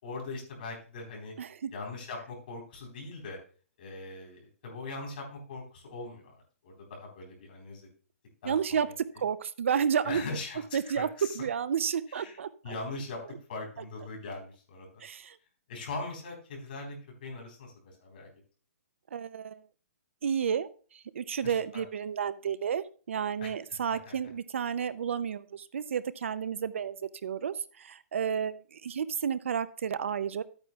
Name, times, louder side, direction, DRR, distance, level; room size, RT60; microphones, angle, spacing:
voice 1, 0.0-1.3 1.7-3.4 3.8-6.3 6.6-7.9 8.4-8.9 10.0-11.4 12.1-12.4 12.6-13.2 13.5-15.0 15.7-18.3 21.4-21.8 23.4-24.1, left 3 dB, 40° left, 0 dB, 3.9 m, -41 dB
voice 2, 1.4-1.7 8.4-10.2 10.7-12.7 15.0-15.4 19.1-19.6 20.2-27.0 27.2-30.4, right 7 dB, 60° right, 16 dB, 0.5 m, -31 dB
12.5 x 8.8 x 2.3 m, 0.39 s
hypercardioid pair, 175°, 8 cm